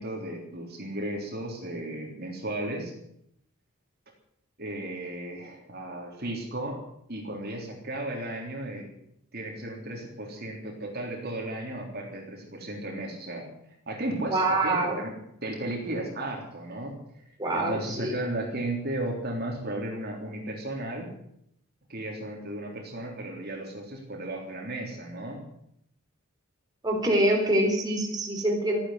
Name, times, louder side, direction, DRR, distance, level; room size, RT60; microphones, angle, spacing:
voice 1, 0.0-2.9 4.6-6.8 7.1-8.9 9.3-13.5 13.9-15.1 15.4-17.0 17.5-21.1 21.9-25.4, right 1 dB, 45° right, 0 dB, 3.4 m, -34 dB
voice 2, 14.3-15.0 17.4-18.1 26.8-28.8, right 1 dB, 20° right, 0 dB, 3.9 m, -25 dB
14.5 x 10.5 x 9.5 m, 0.74 s
head